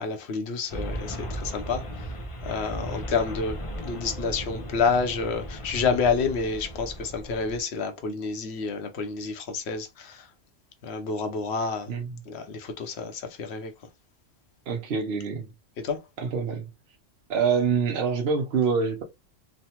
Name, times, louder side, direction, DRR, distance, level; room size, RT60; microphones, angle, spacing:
voice 1, 0.0-2.1 2.4-10.3 10.8-11.9 12.3-13.7 15.8-16.0, left 5 dB, 60° left, 0.9 m, -29 dB
sound 1, 0.7-7.6, equal, 40° left, 0.5 m, -36 dB
voice 2, 11.9-12.2 14.7-15.5 16.2-16.7 17.3-19.0, right 5 dB, 55° right, 0.8 m, -26 dB
3.2 x 2.1 x 2.8 m
omnidirectional pair, 1.3 m